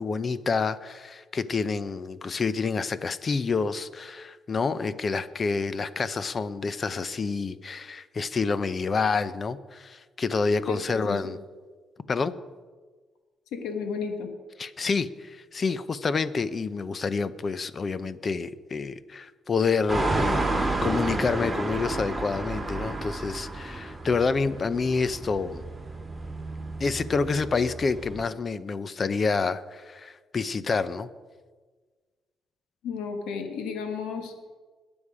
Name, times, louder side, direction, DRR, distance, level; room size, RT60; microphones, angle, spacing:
voice 1, 0.0-11.4 12.1-12.3 14.6-25.6 26.8-31.1, left 4 dB, 40° left, 15 dB, 0.7 m, -28 dB
voice 2, 10.7-11.3 13.5-14.3 32.8-34.3, left 5 dB, 90° left, 5 dB, 1.4 m, -33 dB
sound 1, 19.9-28.2, right 2 dB, 10° right, 2.8 m, -31 dB
21.5 x 7.2 x 5.0 m, 1.4 s
cardioid pair, 90°, 0 cm